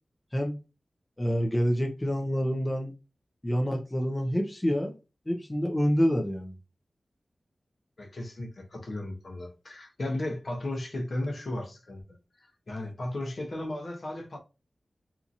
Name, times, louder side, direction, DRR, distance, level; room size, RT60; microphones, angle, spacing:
voice 1, 1.2-2.9 3.4-4.9 5.3-6.5, equal, 20° left, 0.6 m, -27 dB
voice 2, 8.0-12.0 12.4-14.4, left 1 dB, 60° left, 0.8 m, -35 dB
2.8 x 2.5 x 2.6 m
wide cardioid pair, 75°, 0 cm